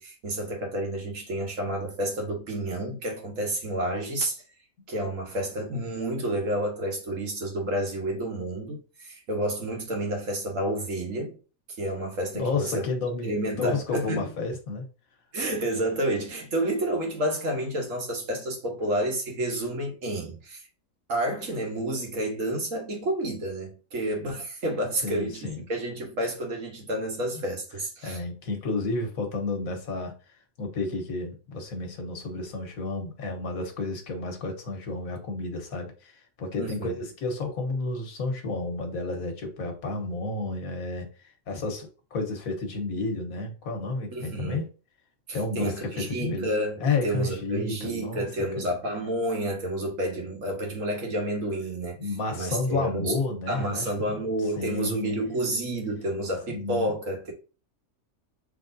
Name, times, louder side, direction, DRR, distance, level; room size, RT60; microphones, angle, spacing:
voice 1, 0.0-4.4 4.9-11.4 11.8-12.9 13.2-14.3 15.3-20.6 21.1-28.2 36.6-36.9 44.1-44.6 45.6-52.0 52.4-53.2 53.5-57.3, right 1 dB, 70° right, 1.6 m, -30 dB
voice 2, 12.3-13.3 13.6-14.8 25.0-25.6 28.0-30.1 30.6-44.6 45.3-46.5 46.8-48.3 48.6-48.7 52.0-54.1 54.6-55.1 56.5-56.9, left 3 dB, 90° left, 1.5 m, -31 dB
5.7 x 3.4 x 2.6 m
omnidirectional pair, 1.4 m